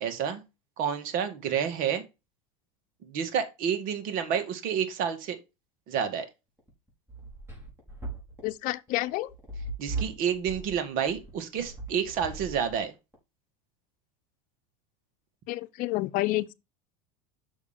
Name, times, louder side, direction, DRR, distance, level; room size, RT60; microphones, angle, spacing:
voice 1, 0.0-0.4 0.8-2.0 3.0-5.4 5.9-6.3 9.8-12.9, right 8 dB, 55° right, 1.9 m, -29 dB
sound 1, 6.6-13.1, right 3 dB, 15° right, 5.1 m, -38 dB
voice 2, 8.4-9.3 15.5-16.5, left 18 dB, 55° left, 0.8 m, -29 dB
6.9 x 6.4 x 5.1 m
hypercardioid pair, 100°, 17 cm